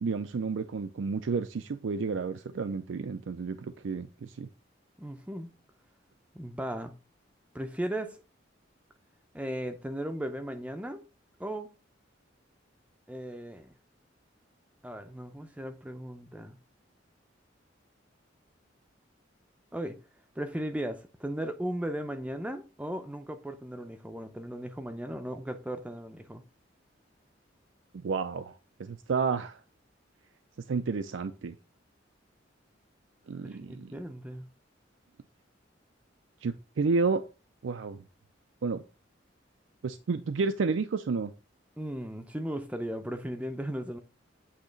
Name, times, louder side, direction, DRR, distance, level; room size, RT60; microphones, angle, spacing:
voice 1, 0.0-4.5 28.0-29.6 30.7-31.5 33.3-33.9 36.4-37.2 37.6-38.0 38.6-38.8 39.8-41.3, right 4 dB, 80° right, 0.4 m, -31 dB
voice 2, 5.0-5.5 6.3-6.9 7.5-8.2 9.3-11.0 11.4-11.7 13.1-13.7 14.8-16.6 19.7-20.0 20.4-26.4 33.4-34.5 41.8-44.0, right 1 dB, 5° right, 0.5 m, -36 dB
8.5 x 2.9 x 5.1 m
head